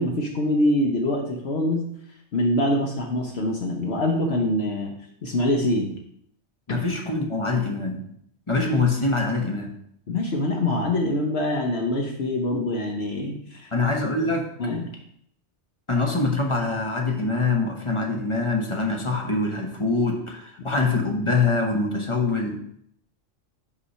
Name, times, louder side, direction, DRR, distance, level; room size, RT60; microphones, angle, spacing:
voice 1, 0.0-1.9 2.3-5.9 6.7-6.8 10.1-13.7 14.6-14.8, left 1 dB, 60° left, 2 dB, 1.1 m, -24 dB
voice 2, 6.7-8.0 8.5-9.7 13.7-14.5 15.9-22.6, left 3 dB, 25° left, 2 dB, 0.9 m, -24 dB
5.5 x 4.9 x 5.5 m, 0.70 s
omnidirectional pair, 1.2 m